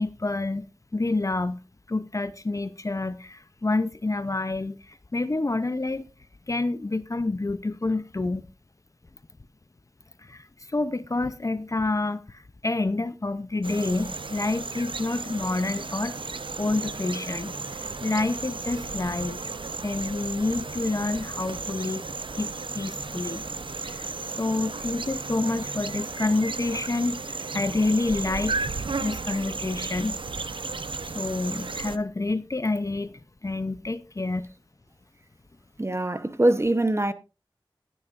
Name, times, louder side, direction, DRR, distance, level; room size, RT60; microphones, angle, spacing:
voice 1, 0.0-1.6 1.9-6.1 6.5-8.5 10.2-16.2 16.6-19.4 19.8-22.1 22.4-23.4 23.8-24.1 24.4-28.7 29.0-30.2 31.0-34.5, left 2 dB, 40° left, 0.6 m, -28 dB
sound 1, 13.6-32.0, right 4 dB, 75° right, 0.7 m, -34 dB
voice 2, 35.8-37.1, right 1 dB, 30° right, 0.9 m, -23 dB
15.5 x 10.5 x 2.5 m
wide cardioid pair, 65°, 9 cm